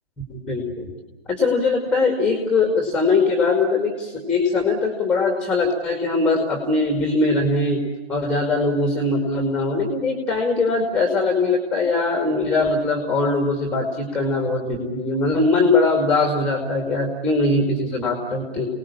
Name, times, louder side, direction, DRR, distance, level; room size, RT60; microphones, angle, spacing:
voice 1, 0.3-0.9 1.3-18.7, left 3 dB, 5° left, 3 dB, 2.3 m, -21 dB
29.5 x 19.0 x 7.2 m, 1.2 s
figure-of-eight pair, 140°, 32 cm